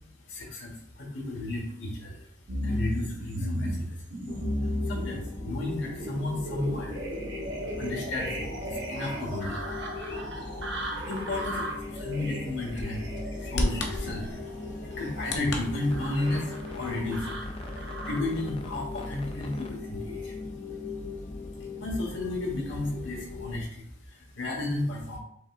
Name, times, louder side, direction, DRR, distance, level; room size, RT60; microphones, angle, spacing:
voice 1, 0.3-2.3 2.6-4.0 4.6-7.0 7.8-9.7 10.9-13.1 13.4-20.4 21.8-25.2, left 2 dB, 80° left, 0 dB, 1.3 m, -33 dB
sound 1, 2.5-18.4 19.0-19.7 20.2-20.3, equal, 75° right, 0.9 m, -36 dB
sound 2, 4.3-23.6, left 3 dB, 30° left, 0.3 m, -39 dB
Bird vocalization bird call bird song, 9.6-15.6, left 1 dB, 65° left, 0.7 m, -36 dB
5.1 x 3.6 x 2.5 m, 0.69 s
head